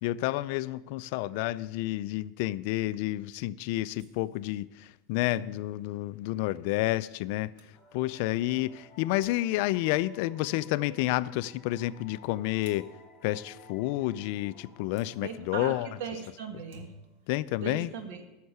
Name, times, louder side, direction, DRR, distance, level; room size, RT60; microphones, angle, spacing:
voice 1, 0.0-7.5 7.9-12.9 13.2-15.9 17.3-17.9, left 17 dB, 60° left, 0.4 m, -30 dB
sound 1, 4.0-4.5 7.2-7.3 7.6-7.8 9.2-9.8 12.6-13.1 15.0-15.2 16.5-17.3, right 1 dB, 55° right, 1.7 m, -54 dB
sound 2, 7.7-17.1, left 2 dB, 5° left, 2.2 m, -54 dB
voice 2, 15.2-16.9 17.6-18.2, right 6 dB, 75° right, 1.8 m, -38 dB
14.0 x 6.5 x 6.8 m
supercardioid pair, 155°, 0 cm